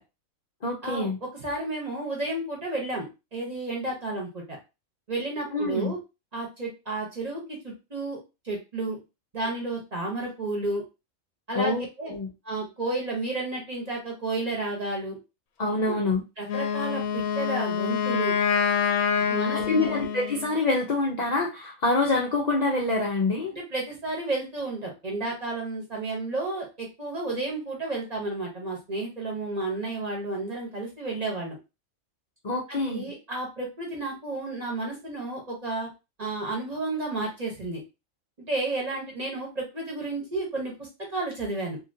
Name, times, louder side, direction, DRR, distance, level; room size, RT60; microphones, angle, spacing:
voice 1, 0.6-1.2 5.5-5.9 11.5-12.3 15.6-16.2 19.5-23.5 32.4-33.1, left 2 dB, 50° left, -1 dB, 0.5 m, -26 dB
voice 2, 1.4-4.4 5.1-6.0 6.3-8.2 8.4-9.0 9.3-10.8 11.5-12.1 12.4-15.2 15.9-16.0 16.4-18.3 19.3-20.0 23.5-31.6 32.7-35.9 36.2-37.8 38.5-41.8, right 2 dB, 30° right, -2 dB, 1.0 m, -32 dB
Wind instrument woodwind instrument, 16.4-20.6, left 7 dB, 80° left, 1.0 m, -26 dB
2.8 x 2.7 x 2.6 m, 0.27 s
omnidirectional pair, 1.4 m